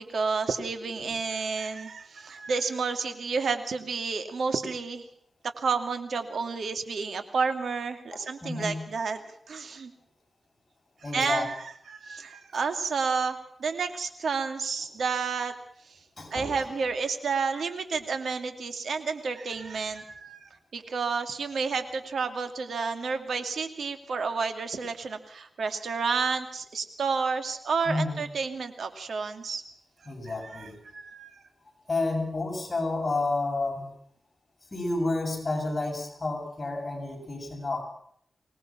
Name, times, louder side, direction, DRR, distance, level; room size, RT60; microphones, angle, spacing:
voice 1, 0.0-5.0 5.6-9.2 9.5-9.9 11.0-15.5 16.3-29.6 30.2-31.3, right 5 dB, 85° right, 7 dB, 2.5 m, -30 dB
voice 2, 8.1-8.8 11.0-11.5 16.2-16.7 27.9-28.2 30.1-30.8 31.9-33.9 34.7-37.8, left 2 dB, 40° left, 1 dB, 7.5 m, -30 dB
24.0 x 19.0 x 5.9 m, 0.65 s
wide cardioid pair, 85°, 0 cm